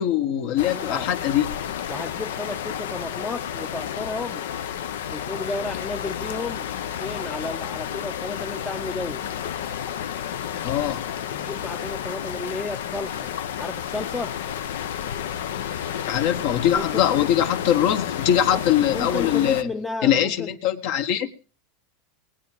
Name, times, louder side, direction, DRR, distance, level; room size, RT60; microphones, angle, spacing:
voice 1, 0.0-1.5 10.6-11.2 16.1-19.7 20.0-21.3, left 10 dB, 60° left, 1.6 m, -22 dB
sound 1, 0.6-19.6, left 9 dB, 85° left, 0.8 m, -31 dB
voice 2, 0.6-1.1 1.9-4.5 5.1-6.7 7.0-9.3 11.3-14.4 16.7-17.0 18.5-18.6 18.9-20.5, left 2 dB, 10° left, 0.6 m, -33 dB
20.5 x 9.0 x 4.6 m
supercardioid pair, 125°, 0 cm